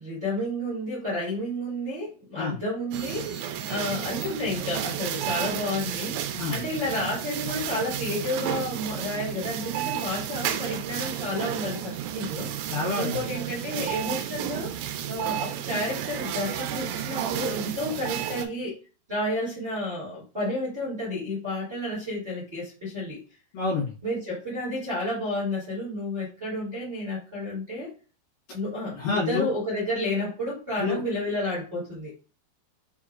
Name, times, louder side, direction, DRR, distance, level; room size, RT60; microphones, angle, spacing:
voice 1, 0.0-18.8 19.1-23.2 24.0-27.9 28.5-32.1, left 1 dB, 25° right, -7 dB, 1.8 m, -31 dB
sound 1, 2.9-18.5, right 10 dB, 90° right, 2.9 m, -32 dB
voice 2, 12.7-13.2 23.5-23.9 28.9-29.5 30.8-31.0, left 4 dB, 65° left, -6 dB, 2.6 m, -27 dB
7.1 x 3.0 x 2.4 m, 0.34 s
omnidirectional pair, 5.1 m